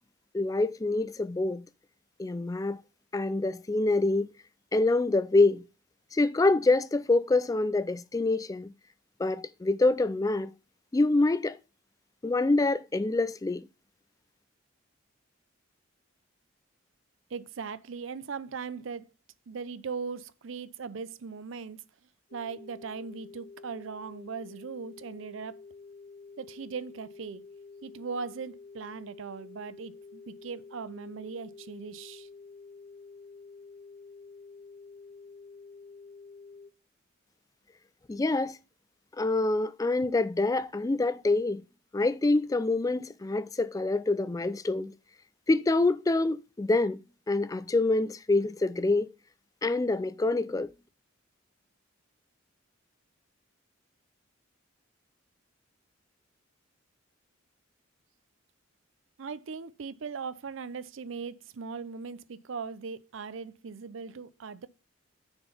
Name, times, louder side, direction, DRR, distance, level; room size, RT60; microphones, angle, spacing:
voice 1, 0.3-1.6 2.2-2.8 3.1-4.3 4.7-5.6 6.1-8.7 9.2-10.5 10.9-11.6 12.2-13.7 38.1-38.6 39.2-41.6 41.9-44.9 45.5-47.0 47.3-49.1 49.6-50.7, left 2 dB, 15° left, 0.3 m, -26 dB
voice 2, 17.3-19.1 19.5-21.8 22.3-25.6 26.4-27.4 27.8-32.3 59.2-64.7, right 5 dB, 70° right, 0.5 m, -39 dB
sound 1, 22.3-36.7, left 4 dB, 85° left, 1.8 m, -49 dB
6.7 x 4.4 x 5.5 m
head